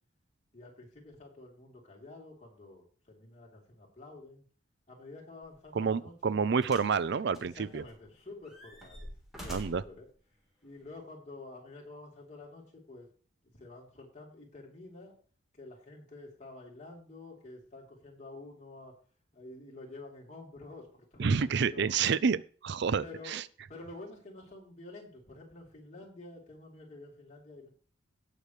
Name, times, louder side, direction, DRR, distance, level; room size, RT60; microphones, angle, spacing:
voice 1, 0.5-4.4 4.9-6.4 7.4-9.1 9.4-10.1 10.6-13.1 13.5-15.2 15.5-18.9 19.3-21.9 23.0-23.4 23.7-27.7, left 2 dB, 35° left, -1 dB, 3.5 m, -49 dB
sound 1, 5.4-5.6 6.6-7.0 7.3-8.0 8.4-9.9 10.8-10.9, equal, ahead, 3.6 m, -46 dB
voice 2, 5.7-7.8 9.5-9.8 21.2-23.4, right 5 dB, 55° right, 17 dB, 0.4 m, -29 dB
18.0 x 6.8 x 3.2 m, 0.41 s
head